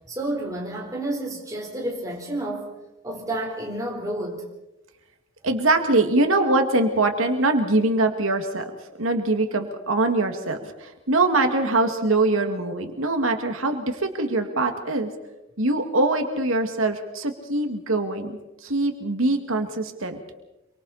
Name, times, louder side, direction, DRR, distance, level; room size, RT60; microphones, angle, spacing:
voice 1, 0.1-2.7 3.0-4.4, right 1 dB, 15° right, 4.3 m, -30 dB
voice 2, 5.4-8.6 9.0-15.1 15.6-20.2, right 2 dB, 85° right, 2.3 m, -23 dB
27.0 x 24.5 x 4.3 m
head